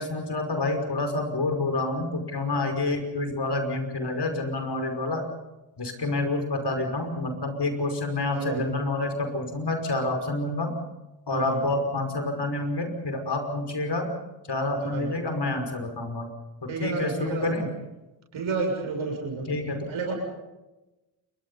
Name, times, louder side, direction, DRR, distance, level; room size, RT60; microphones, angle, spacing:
voice 1, 0.0-5.2 5.8-10.7 11.3-14.1 14.5-16.3 16.6-17.7 19.5-19.9, left 2 dB, 55° left, 5 dB, 5.5 m, -28 dB
voice 2, 8.3-8.6 11.3-11.6 14.9-15.1 16.7-17.5 18.3-19.5 19.9-20.1, right 4 dB, 85° right, 1 dB, 7.1 m, -30 dB
27.5 x 23.0 x 5.6 m, 1.0 s
cardioid pair, 45°, 47 cm